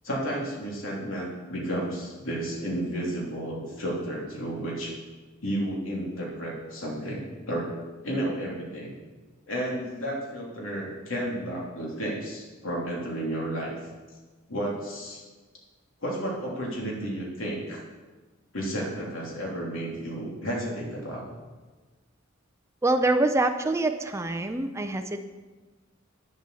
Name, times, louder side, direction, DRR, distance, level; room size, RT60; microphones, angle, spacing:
voice 1, 0.0-4.9 5.4-7.7 8.0-8.9 9.5-13.7 14.5-15.2 16.0-17.8 18.5-21.2, right 1 dB, 80° left, -3 dB, 3.0 m, -32 dB
voice 2, 22.8-25.3, right 2 dB, 15° right, 6 dB, 0.5 m, -25 dB
9.7 x 7.9 x 6.9 m, 1.3 s
head